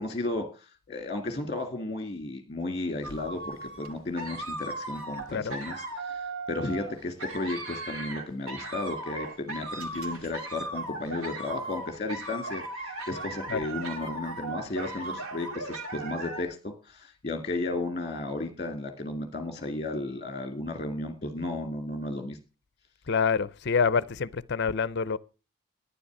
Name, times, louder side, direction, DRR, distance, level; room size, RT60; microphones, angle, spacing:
voice 1, 0.0-22.4, left 2 dB, 30° left, 2.0 m, -34 dB
sound 1, 3.0-16.4, right 2 dB, 75° right, 2.4 m, -37 dB
voice 2, 23.1-25.2, left 5 dB, 50° left, 0.5 m, -26 dB
11.5 x 10.0 x 6.0 m
head